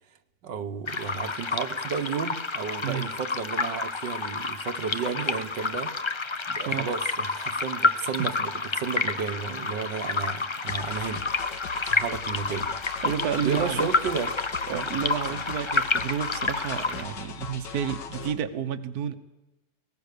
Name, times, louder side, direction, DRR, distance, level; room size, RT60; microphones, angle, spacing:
voice 1, 0.4-5.9 6.5-11.2 11.8-12.7 13.4-14.3 14.7-14.9 15.3-15.4, right 6 dB, 85° right, 7 dB, 1.9 m, -32 dB
sound 1, 0.9-17.0, left 3 dB, 40° left, 0.4 m, -29 dB
sound 2, 10.7-18.4, left 7 dB, 85° left, 1.9 m, -39 dB
voice 2, 13.0-13.9 14.7-19.1, right 8 dB, 65° right, 8 dB, 1.5 m, -30 dB
23.0 x 19.5 x 6.8 m, 1.0 s
omnidirectional pair, 1.9 m